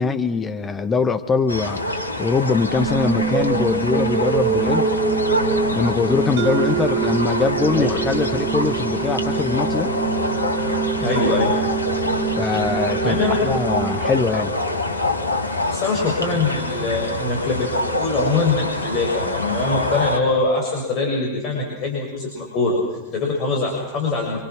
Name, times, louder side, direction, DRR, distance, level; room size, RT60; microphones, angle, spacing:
voice 1, 0.0-4.9 5.7-9.9 12.4-14.5, left 4 dB, 20° left, 10 dB, 1.4 m, -22 dB
sound 1, 1.5-20.2, left 1 dB, 80° left, 2.7 m, -25 dB
sound 2, 2.7-14.8, right 5 dB, 15° right, 1.8 m, -25 dB
Mallet percussion, 6.4-10.9, right 16 dB, 45° right, 1.1 m, -29 dB
voice 2, 11.0-11.5 13.0-13.5 15.7-24.4, left 3 dB, 35° left, -1 dB, 7.1 m, -23 dB
28.5 x 26.0 x 6.2 m, 1.1 s
figure-of-eight pair, 90°, 0 cm